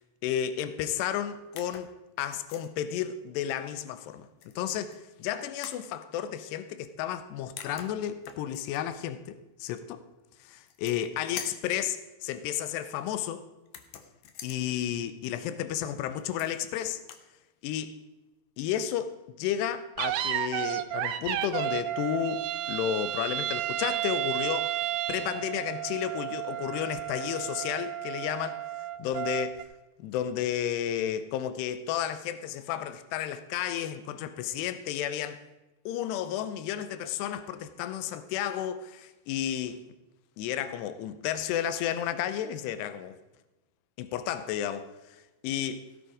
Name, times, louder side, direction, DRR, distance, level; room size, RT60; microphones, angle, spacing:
voice 1, 0.2-1.9 2.2-10.0 10.4-13.4 14.4-17.0 17.6-18.0 18.6-19.1 19.4-28.6 29.0-29.6 30.0-35.4 35.9-39.8 40.4-43.2 44.0-45.9, left 10 dB, 90° left, 2.8 m, -32 dB
sound 1, 1.6-1.9 2.3-2.7 4.4-5.0 5.6-5.9 7.2-7.3 7.6-8.8 10.5-11.1 11.4-11.7 13.7-14.6 16.2-16.7 17.0-17.3, left 8 dB, 70° left, 2.2 m, -44 dB
sound 2, 20.0-29.6, right 12 dB, 85° right, 2.7 m, -32 dB
16.5 x 7.9 x 4.9 m
omnidirectional pair, 4.7 m